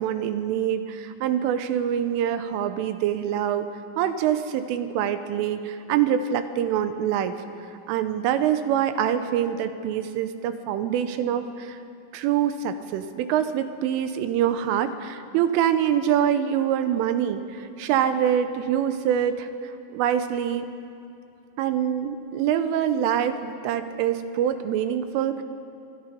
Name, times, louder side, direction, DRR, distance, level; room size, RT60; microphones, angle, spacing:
voice 1, 0.0-3.7 4.0-7.4 7.9-11.8 12.1-19.5 19.9-20.7 21.6-25.4, right 9 dB, 80° right, 9 dB, 3.4 m, -25 dB
25.0 x 24.0 x 5.2 m, 2.7 s
omnidirectional pair, 5.8 m